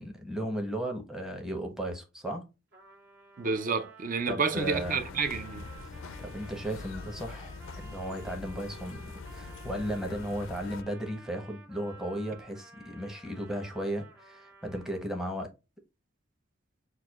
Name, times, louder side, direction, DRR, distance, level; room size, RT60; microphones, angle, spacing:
voice 1, 0.0-2.5 4.3-5.0 6.2-15.5, right 1 dB, 5° right, 0.8 m, -35 dB
Trumpet, 2.7-15.2, right 3 dB, 55° right, 1.7 m, -53 dB
voice 2, 3.4-5.7, right 5 dB, 40° right, 0.5 m, -30 dB
sound 1, 4.6-10.8, left 4 dB, 75° left, 0.4 m, -43 dB
6.2 x 2.3 x 2.3 m
head